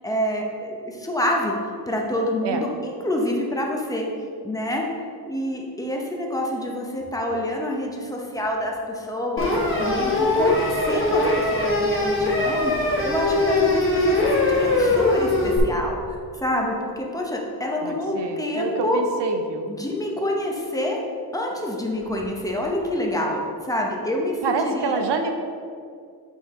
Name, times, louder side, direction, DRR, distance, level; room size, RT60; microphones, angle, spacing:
voice 1, 0.0-1.6 1.9-4.1 4.4-4.9 5.3-16.0 16.4-19.1 19.7-21.0 21.3-25.0, left 1 dB, 10° left, -1 dB, 0.8 m, -27 dB
sound 1, 9.4-15.6, left 2 dB, 30° left, 1.3 m, -21 dB
voice 2, 17.8-19.7 24.4-25.4, right 4 dB, 90° right, 5 dB, 0.8 m, -27 dB
8.0 x 4.6 x 3.7 m, 2.3 s
wide cardioid pair, 140°, 41 cm